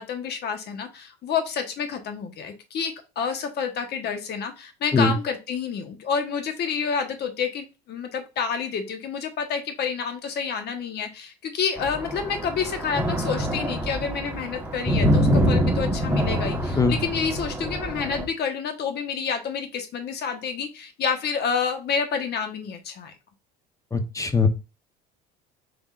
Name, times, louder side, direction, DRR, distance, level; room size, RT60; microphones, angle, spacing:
voice 1, 0.0-23.1, left 6 dB, 50° left, 6 dB, 1.2 m, -29 dB
sound 1, 11.8-18.3, equal, 10° right, 1.3 m, -25 dB
voice 2, 23.9-24.5, left 4 dB, 15° left, 8 dB, 0.9 m, -21 dB
4.9 x 3.7 x 2.4 m, 0.30 s
hypercardioid pair, 80°, 21 cm